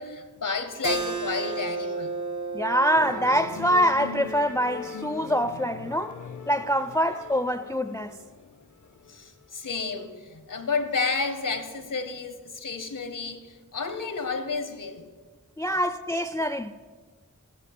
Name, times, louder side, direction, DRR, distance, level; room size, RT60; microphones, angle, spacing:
voice 1, 0.0-2.1 9.1-15.1, left 4 dB, 90° left, 1.0 m, -31 dB
Keyboard (musical), 0.8-6.0, right 3 dB, 70° right, 0.8 m, -34 dB
voice 2, 2.5-6.1 6.5-8.2 15.6-16.7, equal, 10° left, 0.3 m, -25 dB
Musical instrument, 2.9-9.6, left 5 dB, 70° left, 0.6 m, -40 dB
10.5 x 6.1 x 7.7 m
wide cardioid pair, 50°, 31 cm